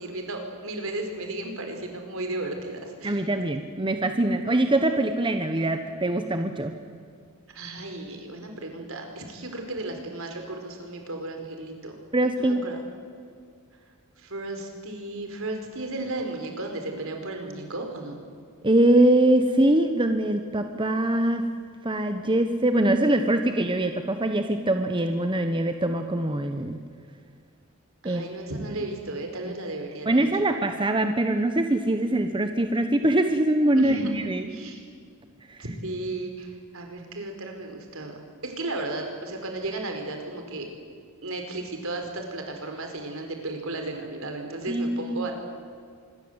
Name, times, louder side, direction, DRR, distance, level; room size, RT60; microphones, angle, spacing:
voice 1, 0.0-3.2 7.5-12.0 12.4-12.8 14.2-18.2 28.0-30.3 33.8-34.8 35.6-38.1 38.4-40.7 41.2-45.3, right 2 dB, 65° right, 4 dB, 4.8 m, -34 dB
voice 2, 3.0-6.7 12.1-12.6 18.6-21.4 21.8-26.8 28.0-28.3 29.4-29.5 30.1-34.5 35.5-35.6 44.7-45.3, right 1 dB, 20° right, 7 dB, 1.1 m, -23 dB
25.5 x 22.0 x 8.1 m, 2.1 s
head